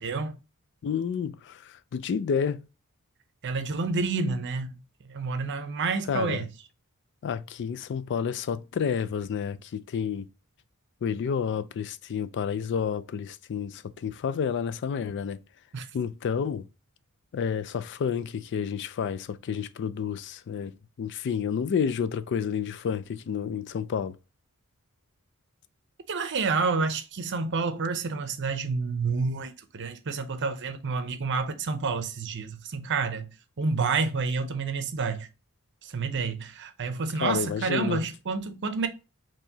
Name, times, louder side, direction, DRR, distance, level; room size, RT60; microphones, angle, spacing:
voice 1, 0.0-0.4 3.4-4.8 5.1-6.5 15.7-15.9 26.1-33.3 33.6-35.3 35.8-38.9, right 4 dB, 55° right, 0.6 m, -29 dB
voice 2, 0.8-2.6 6.1-6.4 7.2-10.3 11.0-15.4 15.9-16.7 17.3-20.7 21.0-24.2 37.2-38.0, left 7 dB, 55° left, 0.3 m, -30 dB
4.5 x 3.0 x 2.7 m
head